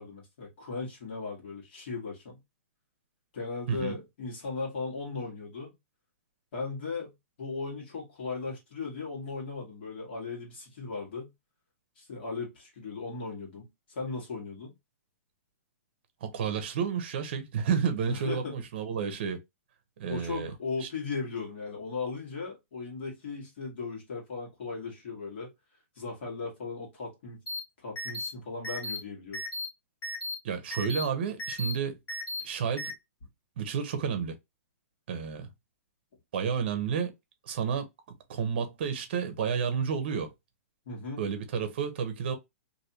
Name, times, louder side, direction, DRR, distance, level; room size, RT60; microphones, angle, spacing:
voice 1, 0.0-2.4 3.3-5.7 6.5-7.1 7.4-11.3 12.0-14.7 18.1-18.6 20.1-25.5 25.9-27.4 27.8-29.4 40.8-41.2, left 4 dB, 45° left, 1.5 m, -37 dB
voice 2, 3.7-4.0 16.2-19.4 20.0-20.5 20.8-20.9 30.4-32.0 32.4-32.9 33.6-34.3 35.1-35.5 36.3-37.1 37.5-37.9 38.3-40.3 41.2-42.3, right 6 dB, 45° right, 0.8 m, -31 dB
sound 1, 27.5-27.6 28.0-28.3 28.6-29.0 29.3-29.6 30.0-30.3 30.7-31.0 31.4-31.7 32.1-32.4 32.8-32.9, left 1 dB, 15° left, 1.4 m, -35 dB
3.2 x 2.7 x 2.8 m
hypercardioid pair, 170°, 8 cm